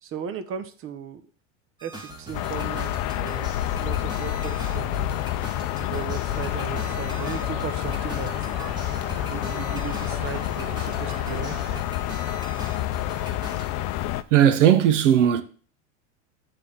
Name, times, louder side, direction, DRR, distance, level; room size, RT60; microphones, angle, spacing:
voice 1, 0.0-1.2 1.8-5.2 5.8-8.3 9.3-11.6, right 8 dB, 35° right, 1.0 m, -36 dB
sound 1, 1.8-13.7, right 1 dB, 10° right, 1.6 m, -41 dB
sound 2, 2.3-14.2, left 13 dB, 45° left, 0.6 m, -28 dB
sound 3, 6.3-11.8, right 6 dB, 60° right, 1.4 m, -41 dB
voice 2, 14.3-15.4, right 10 dB, 80° right, 1.1 m, -17 dB
7.7 x 3.8 x 6.7 m
hypercardioid pair, 105°, 37 cm